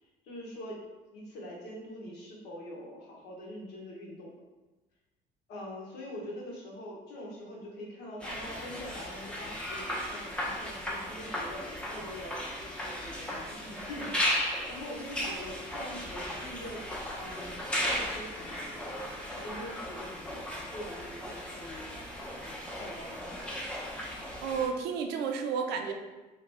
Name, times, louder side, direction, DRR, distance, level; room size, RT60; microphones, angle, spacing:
voice 1, 0.2-0.8 1.1-4.4 5.5-11.6 11.9-16.9 17.2-18.8 19.3-21.9 22.4-23.6, left 1 dB, 80° left, -3 dB, 0.9 m, -44 dB
sound 1, 8.2-24.7, equal, 5° left, 0.5 m, -36 dB
voice 2, 24.4-25.9, right 6 dB, 85° right, 5 dB, 0.4 m, -31 dB
2.8 x 2.4 x 3.3 m, 1.2 s
cardioid pair, 110°, 17 cm